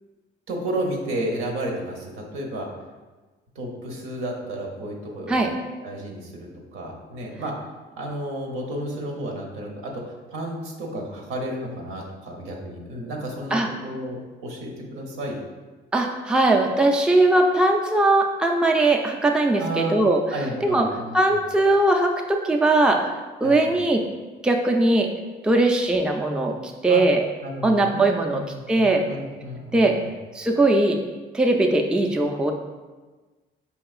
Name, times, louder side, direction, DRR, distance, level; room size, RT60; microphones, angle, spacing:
voice 1, 0.5-2.7 3.6-5.4 5.8-7.5 8.0-9.9 10.3-15.4 19.6-20.0 20.3-21.3 23.4-23.7 26.9-27.0 27.4-28.1 28.3-30.1, right 1 dB, 80° right, 0 dB, 0.8 m, -32 dB
voice 2, 15.9-20.2 20.6-20.9 21.1-23.0 23.4-24.0 24.4-25.1 25.4-26.6 26.8-27.3 27.6-29.0 29.7-29.9 30.4-31.0 31.3-32.5, right 2 dB, 5° right, 3 dB, 0.3 m, -20 dB
4.7 x 2.9 x 2.4 m, 1.3 s
supercardioid pair, 70°, 21 cm